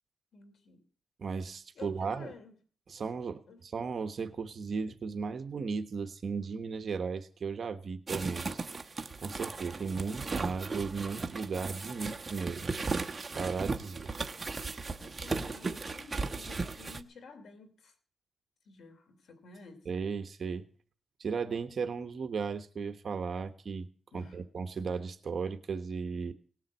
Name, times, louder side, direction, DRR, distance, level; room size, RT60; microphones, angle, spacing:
voice 1, 0.3-0.8 1.7-2.5 3.5-3.6 15.0-17.9 18.6-19.8 24.1-24.5, left 4 dB, 80° left, 7 dB, 3.2 m, -52 dB
voice 2, 1.2-2.3 2.9-8.6 9.2-12.7 13.3-14.1 19.8-20.7 21.2-23.9 24.1-26.3, right 5 dB, 50° right, 8 dB, 1.2 m, -36 dB
sound 1, 8.1-17.0, right 3 dB, 25° right, 1.0 m, -36 dB
18.5 x 7.5 x 7.4 m, 0.43 s
wide cardioid pair, 135°, 0 cm